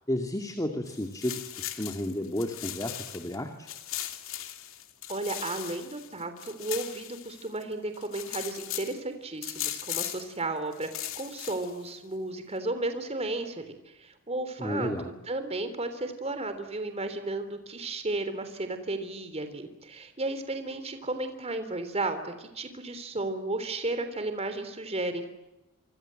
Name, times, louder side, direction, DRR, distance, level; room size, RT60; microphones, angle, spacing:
voice 1, 0.1-3.7 14.6-15.1, left 1 dB, 15° left, 5 dB, 2.5 m, -32 dB
sound 1, 0.9-3.4 3.7-7.6 7.9-9.0 9.4-10.3 10.7-11.9, left 12 dB, 65° left, 2.8 m, -38 dB
voice 2, 5.1-10.9 11.2-14.9 15.3-25.2, right 2 dB, 30° right, 8 dB, 3.5 m, -33 dB
28.0 x 25.5 x 7.8 m, 0.99 s
head